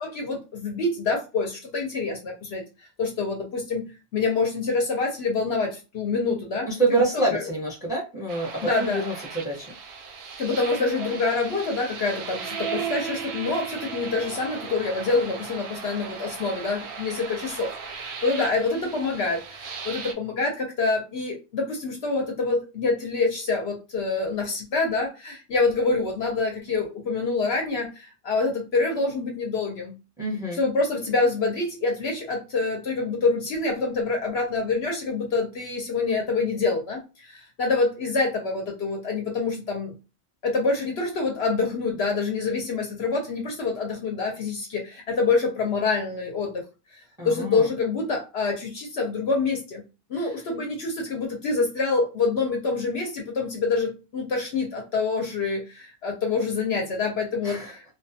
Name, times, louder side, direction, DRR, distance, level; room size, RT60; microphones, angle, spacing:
voice 1, 0.0-2.6 3.0-7.4 8.6-9.0 10.4-29.9 30.5-39.9 40.4-46.6 46.9-49.8 50.1-57.8, left 3 dB, 60° left, 1 dB, 0.8 m, -26 dB
voice 2, 6.6-9.7 30.2-30.6 47.2-47.7 50.2-50.3 57.4-57.7, right 2 dB, 5° right, -3 dB, 0.8 m, -27 dB
sound 1, 8.3-20.1, right 6 dB, 65° right, 0.7 m, -36 dB
2.3 x 2.2 x 2.7 m, 0.30 s
omnidirectional pair, 1.3 m